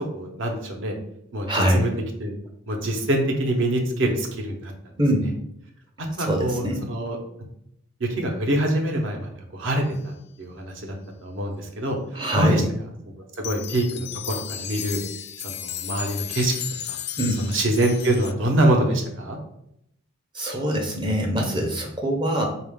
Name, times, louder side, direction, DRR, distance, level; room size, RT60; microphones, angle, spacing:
voice 1, 0.1-0.9 1.3-1.9 2.2-2.3 2.7-4.7 6.0-7.2 8.0-11.0 11.2-12.0 12.3-12.6 13.4-15.0 15.4-16.5 16.9-17.0 17.4-19.4, right 1 dB, 60° right, 2 dB, 0.7 m, -25 dB
voice 2, 1.5-1.9 5.0-5.3 6.2-6.8 12.1-12.6 17.2-17.4 20.3-22.5, equal, 20° right, 1 dB, 0.5 m, -23 dB
sound 1, 13.3-18.3, left 10 dB, 50° left, 0.3 m, -34 dB
3.8 x 2.4 x 3.5 m, 0.76 s
head